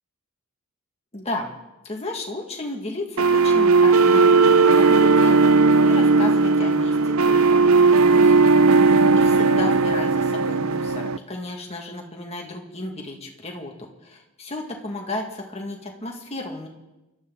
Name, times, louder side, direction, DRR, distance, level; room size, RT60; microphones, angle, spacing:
voice 1, 1.1-1.5 1.8-5.3 5.8-8.6 9.2-16.7, left 2 dB, 30° left, 0 dB, 2.1 m, -34 dB
sound 1, 3.2-11.2, right 4 dB, 75° right, 0.7 m, -16 dB
28.0 x 12.5 x 4.0 m, 1.0 s
head